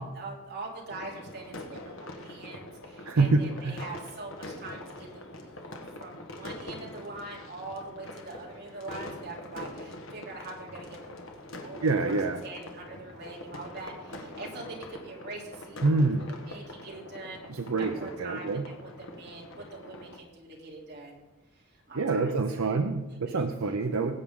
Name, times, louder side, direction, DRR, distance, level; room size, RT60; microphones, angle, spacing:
voice 1, 0.0-12.2 12.4-17.5 17.8-21.2 21.5-22.8 23.3-23.5, right 2 dB, 50° right, -3 dB, 3.3 m, -43 dB
sound 1, 0.9-20.2, left 1 dB, 65° left, 1.5 m, -44 dB
voice 2, 3.0-3.8 11.8-12.4 15.8-16.3 17.5-18.6 21.9-24.1, right 3 dB, 70° right, 6 dB, 0.7 m, -26 dB
19.5 x 8.4 x 3.7 m, 1.0 s
head